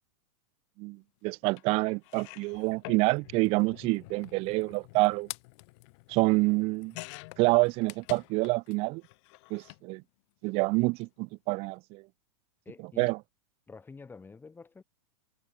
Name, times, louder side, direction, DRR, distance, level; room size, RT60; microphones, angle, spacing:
voice 1, 0.8-5.3 6.1-6.9 7.4-9.0 9.5-10.0 10.4-12.0 13.0-13.2, right 25 dB, 30° right, 0.5 m, -27 dB
sound 1, 1.6-1.7 2.0-8.8 9.0-9.8 10.9-11.0 11.3-11.4, left 27 dB, 45° left, 6.6 m, -47 dB
voice 2, 12.6-13.1 13.7-14.8, left 4 dB, 10° left, 6.1 m, -48 dB
hypercardioid pair, 145°, 20 cm